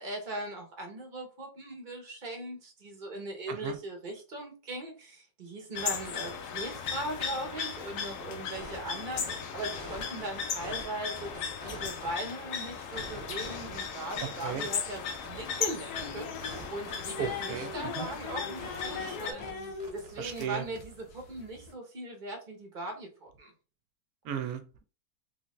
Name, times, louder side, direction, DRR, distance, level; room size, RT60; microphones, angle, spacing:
voice 1, 0.0-11.3 11.6-23.5, right 1 dB, 40° right, 3 dB, 0.9 m, -39 dB
sound 1, 5.7-19.3, left 7 dB, 65° left, 0.9 m, -37 dB
sound 2, 8.5-8.8 9.1-10.8 11.1-12.2 12.7-15.6 15.9-18.3 18.6-19.0 19.4-20.5, right 1 dB, 20° right, 1.3 m, -45 dB
sound 3, 15.9-21.7, left 4 dB, 90° left, 1.3 m, -41 dB
voice 2, 17.2-18.1 20.2-20.7 24.2-24.8, right 8 dB, 75° right, 8 dB, 1.1 m, -36 dB
3.5 x 2.7 x 3.1 m, 0.34 s
omnidirectional pair, 1.6 m